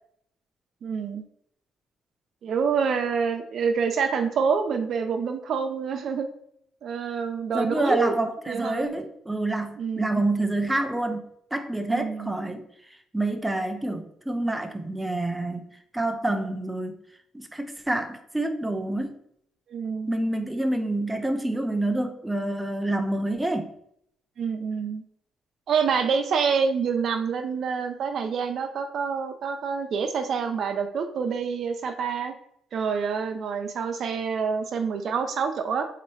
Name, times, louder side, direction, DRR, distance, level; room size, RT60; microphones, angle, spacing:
voice 1, 0.8-1.2 2.4-6.3 6.8-8.1 8.5-8.9 9.8-10.2 11.9-12.3 19.7-20.1 24.4-25.0 25.7-32.4 32.7-35.8, right 6 dB, 60° right, 0.5 m, -27 dB
voice 2, 7.5-11.2 11.5-12.6 13.1-15.6 15.9-16.9 17.3-19.2 20.1-23.7, right 1 dB, 10° right, 0.6 m, -27 dB
3.9 x 2.9 x 4.7 m
cardioid pair, 90°, 0 cm